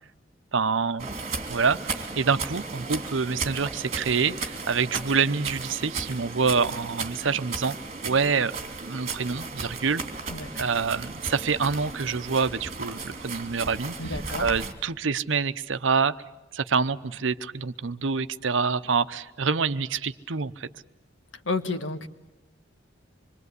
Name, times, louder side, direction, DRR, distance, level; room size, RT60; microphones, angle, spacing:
voice 1, 0.5-1.1 1.5-7.8 8.0-10.0 10.6-16.2 16.5-20.7, right 5 dB, 80° right, 13 dB, 0.8 m, -26 dB
sound 1, 1.0-14.7, right 4 dB, 35° right, 2.9 m, -35 dB
voice 2, 10.3-10.7 14.0-14.4 21.4-22.1, left 3 dB, 80° left, 8 dB, 1.5 m, -31 dB
26.0 x 22.5 x 8.2 m, 1.0 s
head